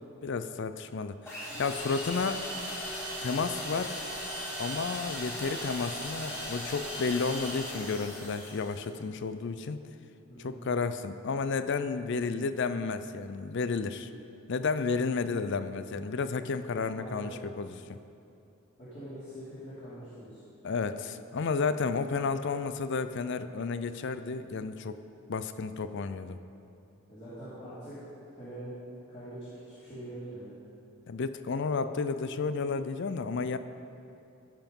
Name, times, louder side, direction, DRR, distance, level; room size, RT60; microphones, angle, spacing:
voice 1, 0.2-2.4 3.2-4.1 4.6-9.8 10.4-14.1 14.5-18.0 20.6-25.0 25.3-26.4 31.1-33.6, left 4 dB, 55° left, 11 dB, 0.4 m, -32 dB
sound 1, 1.3-8.9, equal, 10° left, 2.5 m, -38 dB
voice 2, 10.3-10.6 16.9-17.3 18.8-20.4 27.1-28.0 28.3-28.7 29.1-30.5, right 1 dB, 30° left, -14 dB, 2.8 m, -43 dB
15.0 x 5.7 x 5.3 m, 2.7 s
head